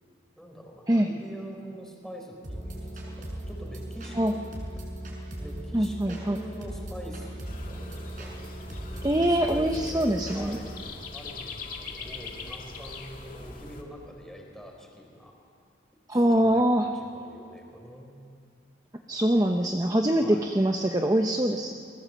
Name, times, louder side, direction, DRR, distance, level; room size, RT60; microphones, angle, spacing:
voice 1, 0.4-4.4 4.8-4.9 5.4-8.5 8.9-10.8 11.1-15.3 16.3-18.2 20.1-20.5, equal, ahead, 1 dB, 4.1 m, -44 dB
sound 1, 2.4-10.8, right 1 dB, 45° right, 5.9 m, -38 dB
voice 2, 5.7-6.4 9.0-10.6 16.1-16.9 19.1-21.7, right 1 dB, 20° right, 4 dB, 0.8 m, -23 dB
sound 2, 7.4-13.8, left 3 dB, 45° left, 2.3 m, -42 dB
29.0 x 20.5 x 7.7 m, 2.3 s
head